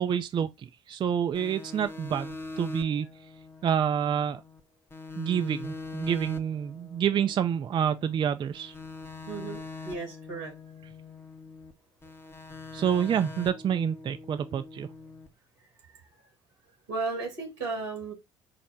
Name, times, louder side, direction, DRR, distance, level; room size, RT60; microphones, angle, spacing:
voice 1, 0.0-3.1 3.6-4.4 5.2-8.7 12.7-14.9, right 8 dB, 35° right, 0.4 m, -28 dB
sound 1, 1.3-4.6 4.9-8.2 8.5-11.7 12.0-15.3, left 3 dB, 15° left, 0.7 m, -43 dB
voice 2, 9.3-10.5 16.9-18.1, right 3 dB, 90° right, 1.8 m, -34 dB
4.1 x 2.1 x 4.4 m
hypercardioid pair, 55°, 14 cm